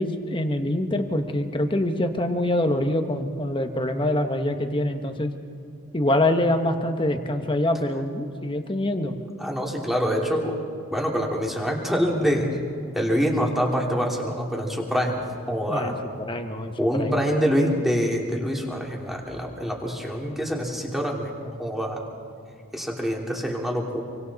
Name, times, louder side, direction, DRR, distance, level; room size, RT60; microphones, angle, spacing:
voice 1, 0.0-5.3 5.9-9.1 15.7-17.1 17.6-17.7, left 1 dB, 20° left, 6 dB, 1.3 m, -25 dB
voice 2, 9.4-10.6 10.9-12.5 12.9-15.9 16.8-22.0 22.7-24.0, equal, ahead, -1 dB, 2.8 m, -25 dB
27.0 x 24.5 x 4.2 m, 2.5 s
head